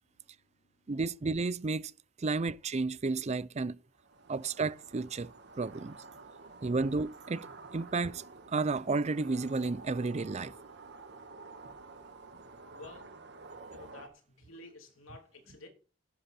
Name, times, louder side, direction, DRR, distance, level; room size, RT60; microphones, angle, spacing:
voice 1, 0.3-0.9 12.7-13.1 13.7-15.7, left 2 dB, 80° left, 3.2 m, -52 dB
voice 2, 0.9-1.9 2.2-3.8 4.3-5.3 5.6-6.0 6.6-8.2 8.5-10.5, right 3 dB, 35° right, 0.5 m, -32 dB
sound 1, 3.9-14.1, right 3 dB, 55° right, 1.6 m, -50 dB
11.0 x 10.5 x 4.3 m
head